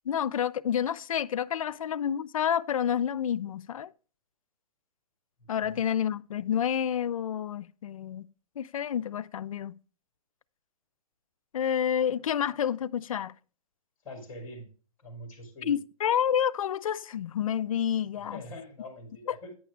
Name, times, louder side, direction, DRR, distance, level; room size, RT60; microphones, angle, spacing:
voice 1, 0.1-3.9 5.5-8.3 8.6-9.8 11.5-13.4 15.6-18.4, left 9 dB, 60° left, 0.4 m, -29 dB
voice 2, 5.4-5.8 14.0-14.7 15.0-15.8 18.2-19.5, left 1 dB, 10° left, 2.3 m, -44 dB
9.3 x 6.1 x 3.3 m
hypercardioid pair, 180°, 19 cm